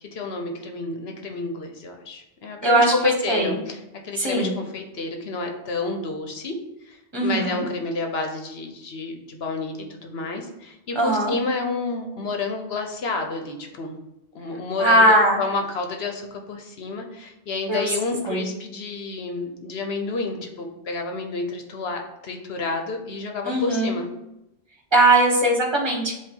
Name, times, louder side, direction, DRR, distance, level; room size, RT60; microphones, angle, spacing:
voice 1, 0.0-6.5 6.8-14.0 14.3-24.1, left 3 dB, 70° left, 4 dB, 1.2 m, -29 dB
voice 2, 2.6-2.9 3.3-3.6 4.2-4.6 7.1-7.6 10.9-11.3 14.8-15.4 17.7-17.9 18.3-18.5 23.4-24.0 24.9-26.2, right 1 dB, 25° right, 0 dB, 1.4 m, -19 dB
7.7 x 2.6 x 5.4 m, 0.88 s
omnidirectional pair, 1.1 m